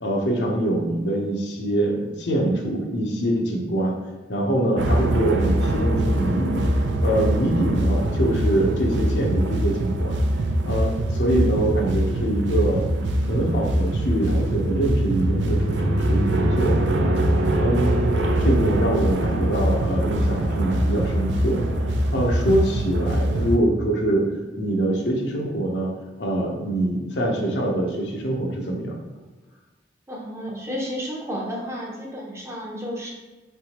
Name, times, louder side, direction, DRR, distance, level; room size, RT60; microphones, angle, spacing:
voice 1, 0.0-3.9 4.3-6.6 7.0-10.2 10.6-12.8 13.2-16.9 17.6-18.0 18.4-21.7 22.1-24.3 24.6-25.9 26.2-29.0, right 1 dB, 75° left, 0 dB, 0.9 m, -24 dB
sound 1, 4.8-23.6, right 1 dB, 75° right, 0.5 m, -23 dB
voice 2, 30.1-33.1, equal, 15° right, -2 dB, 0.7 m, -32 dB
4.9 x 3.4 x 3.0 m, 1.2 s
head